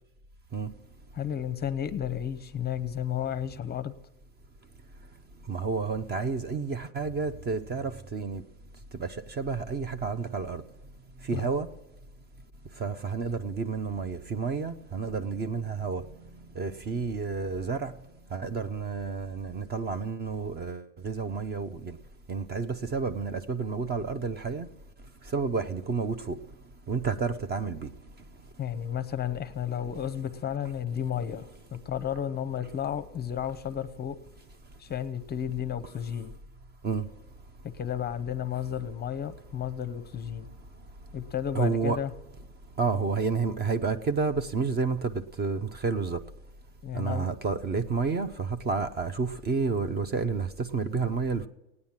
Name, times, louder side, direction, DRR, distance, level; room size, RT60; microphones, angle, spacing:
voice 1, 1.1-3.9 11.3-11.5 28.6-34.2 34.8-36.3 37.6-40.5 41.1-42.1 46.8-47.3, left 9 dB, 25° left, 13 dB, 0.7 m, -32 dB
voice 2, 5.5-8.4 9.0-10.6 11.3-11.7 12.8-16.0 16.6-17.9 18.3-22.0 22.3-24.7 25.3-26.4 26.9-27.9 36.8-37.1 41.5-42.0 42.8-46.2 46.9-51.5, right 4 dB, 25° right, 12 dB, 0.7 m, -30 dB
16.5 x 9.7 x 7.3 m, 0.94 s
supercardioid pair, 130°, 37 cm